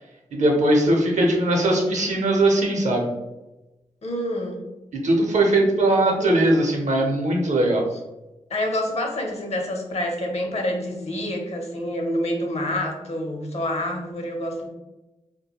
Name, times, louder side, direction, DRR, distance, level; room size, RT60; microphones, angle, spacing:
voice 1, 0.3-3.1 5.0-7.8, right 1 dB, 65° right, 1 dB, 0.7 m, -20 dB
voice 2, 4.0-4.6 5.8-6.4 8.5-14.7, left 1 dB, 50° left, 2 dB, 0.7 m, -27 dB
2.3 x 2.2 x 2.9 m, 1.0 s
cardioid pair, 40°, 13 cm